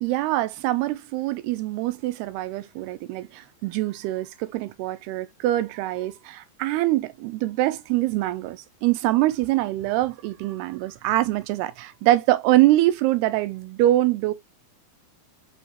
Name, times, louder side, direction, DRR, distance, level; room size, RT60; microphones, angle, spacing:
voice 1, 0.0-14.3, right 15 dB, 85° right, 2.6 m, -24 dB
6.2 x 2.9 x 2.8 m
omnidirectional pair, 4.6 m